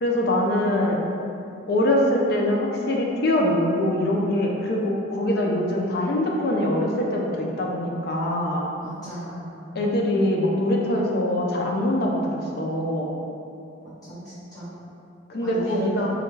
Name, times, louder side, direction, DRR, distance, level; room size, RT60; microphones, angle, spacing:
voice 1, 0.0-1.0 1.7-8.8 9.7-13.1 15.3-16.1, left 1 dB, 50° left, -1 dB, 0.4 m, -23 dB
voice 2, 8.8-9.7 14.0-14.7 15.4-15.9, right 1 dB, 20° left, -14 dB, 1.5 m, -36 dB
3.4 x 2.2 x 3.1 m, 2.6 s
head